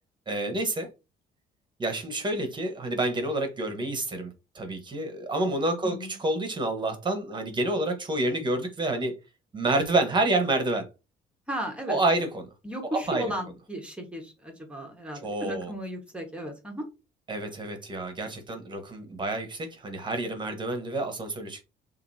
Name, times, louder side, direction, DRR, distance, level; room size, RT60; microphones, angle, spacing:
voice 1, 0.3-0.9 1.8-9.1 9.5-10.9 11.9-12.5 12.9-13.3 15.2-15.7 17.3-21.6, right 2 dB, 25° right, 1.4 m, -28 dB
voice 2, 5.8-6.2 11.5-12.0 12.6-16.9, equal, 5° right, 1.5 m, -35 dB
6.6 x 2.7 x 2.8 m
cardioid pair, 110°, 17 cm